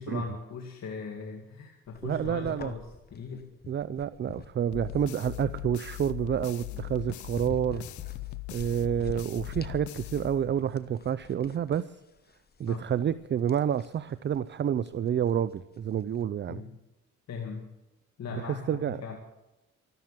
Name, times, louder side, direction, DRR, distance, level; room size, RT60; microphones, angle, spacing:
voice 1, 0.0-3.5 6.7-6.8 12.6-12.8 16.5-16.8 17.3-17.7 18.2-19.2, left 5 dB, 60° left, 2 dB, 2.3 m, -39 dB
sound 1, 1.9-16.2, left 5 dB, 30° left, 1.1 m, -49 dB
voice 2, 2.0-2.7 3.7-7.9 8.5-12.0 12.6-16.6 18.7-19.0, right 9 dB, 40° right, 15 dB, 0.5 m, -29 dB
sound 2, 4.7-10.8, left 18 dB, 75° left, 0.5 m, -40 dB
13.5 x 13.0 x 7.4 m, 0.98 s
cardioid pair, 90°, 30 cm